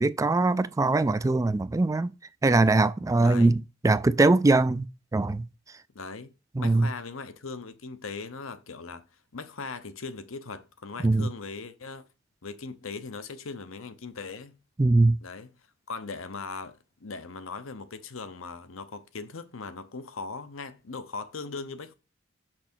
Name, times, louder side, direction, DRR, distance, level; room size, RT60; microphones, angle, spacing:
voice 1, 0.0-2.1 2.4-4.9 5.1-5.5 6.5-6.9 11.0-11.3 14.8-15.2, right 2 dB, 15° right, 0.3 m, -22 dB
voice 2, 3.2-3.5 5.9-9.1 9.3-12.0 12.4-14.6 15.2-15.5 15.9-21.9, left 4 dB, 85° left, 0.9 m, -39 dB
6.2 x 6.1 x 4.4 m
head